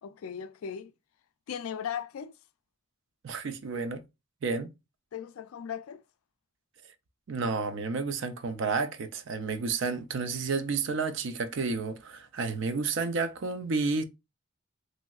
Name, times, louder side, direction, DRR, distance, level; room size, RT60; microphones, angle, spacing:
voice 1, 0.0-0.9 1.5-2.3 5.1-6.0, left 8 dB, 85° left, 0.3 m, -37 dB
voice 2, 3.2-4.0 4.4-4.7 7.3-14.0, right 4 dB, 60° right, 0.4 m, -31 dB
3.0 x 2.7 x 2.3 m
head